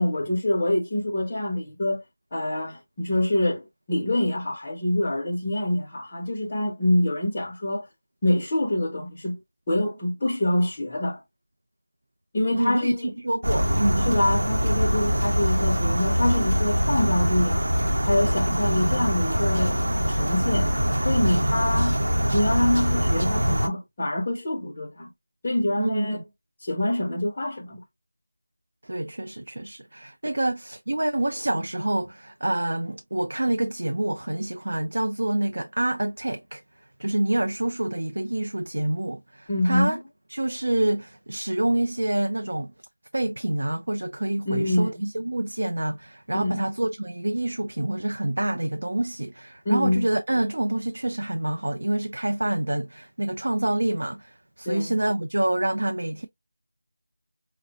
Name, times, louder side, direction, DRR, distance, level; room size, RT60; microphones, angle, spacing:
voice 1, 0.0-2.0 2.3-7.9 8.2-9.4 9.7-11.2 12.3-13.1 14.0-17.7 18.1-19.8 20.1-20.7 21.0-22.0 22.3-25.1 25.4-26.2 26.6-27.8 30.2-30.3 39.5-40.0 44.5-44.9 46.3-46.6 49.6-50.1 54.7-54.9, left 1 dB, 15° left, 0.5 m, -25 dB
voice 2, 12.5-12.9 13.2-14.1 25.8-26.1 28.8-36.6 37.0-40.0 40.3-42.7 43.1-56.3, right 1 dB, 60° right, 0.4 m, -27 dB
sound 1, 13.4-23.7, equal, 80° right, 0.9 m, -23 dB
4.9 x 2.0 x 2.7 m
figure-of-eight pair, 180°, 0 cm